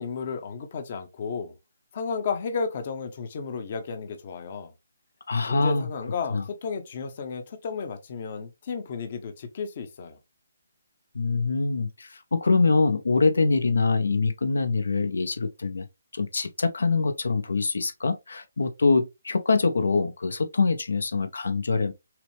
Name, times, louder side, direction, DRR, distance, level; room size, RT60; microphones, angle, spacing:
voice 1, 0.0-1.6 1.9-4.7 5.4-10.2, left 5 dB, 40° left, 0.8 m, -33 dB
voice 2, 5.3-5.9 6.3-6.4 11.1-15.9 16.1-21.9, left 4 dB, 80° left, 0.7 m, -24 dB
5.8 x 2.1 x 3.1 m
hypercardioid pair, 160°, 0 cm